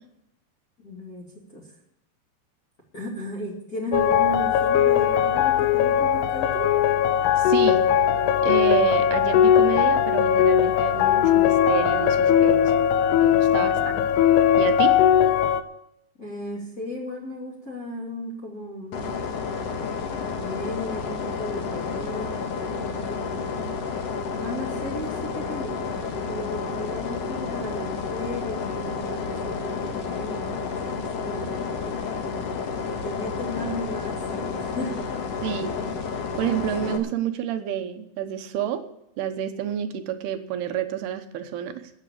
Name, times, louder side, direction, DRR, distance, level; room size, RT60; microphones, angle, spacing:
voice 1, 0.8-1.7 2.9-6.7 13.5-14.0 16.2-19.1 20.4-23.7 24.4-32.6 32.9-35.4, equal, 25° left, -5 dB, 2.6 m, -36 dB
sound 1, 3.9-15.6, left 9 dB, 80° left, 2.7 m, -19 dB
voice 2, 7.4-7.8 8.4-12.9 13.2-13.9 14.6-15.0 35.4-35.7 36.4-38.8 39.2-41.9, right 10 dB, 75° right, 8 dB, 2.9 m, -29 dB
sound 2, 18.9-37.0, left 5 dB, 60° left, 1.6 m, -30 dB
13.0 x 8.9 x 8.5 m, 0.79 s
omnidirectional pair, 4.9 m